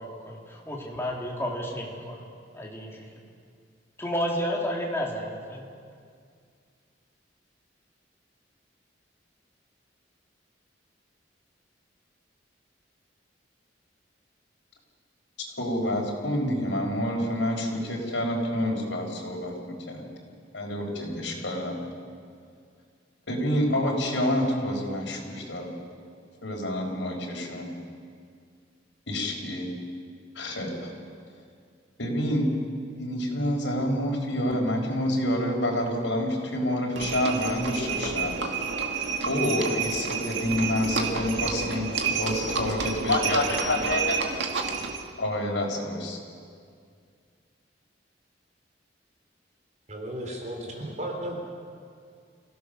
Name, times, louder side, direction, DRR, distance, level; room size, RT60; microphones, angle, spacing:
voice 1, 0.0-2.2 2.5-3.0 4.0-5.7, equal, 15° left, -2 dB, 3.3 m, -31 dB
voice 2, 15.6-20.1 20.5-21.8 23.3-25.8 26.4-27.7 29.1-29.7 30.3-30.9 32.0-32.5 32.9-38.3 39.2-44.6 45.2-46.2, left 1 dB, 85° left, 0 dB, 4.7 m, -28 dB
Livestock farm animals working animals, 36.9-45.1, right 5 dB, 75° right, 2.0 m, -30 dB
voice 3, 49.9-51.4, right 1 dB, 40° right, 2 dB, 3.5 m, -34 dB
27.0 x 16.5 x 6.6 m, 2.2 s
head